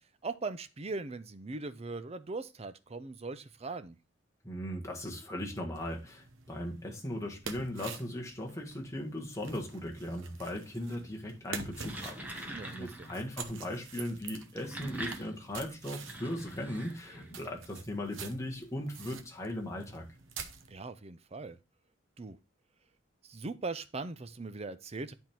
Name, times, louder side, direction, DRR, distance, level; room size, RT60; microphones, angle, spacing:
voice 1, 0.0-4.0 12.5-13.1 20.7-21.6 22.2-22.4 23.2-25.1, right 3 dB, 30° right, 0.6 m, -40 dB
voice 2, 4.4-20.1, left 1 dB, 15° left, 1.6 m, -38 dB
sound 1, 5.7-20.7, right 6 dB, 90° right, 0.9 m, -48 dB
sound 2, 11.6-13.2 14.4-17.5, right 1 dB, 10° right, 1.2 m, -44 dB
10.0 x 3.7 x 4.4 m
head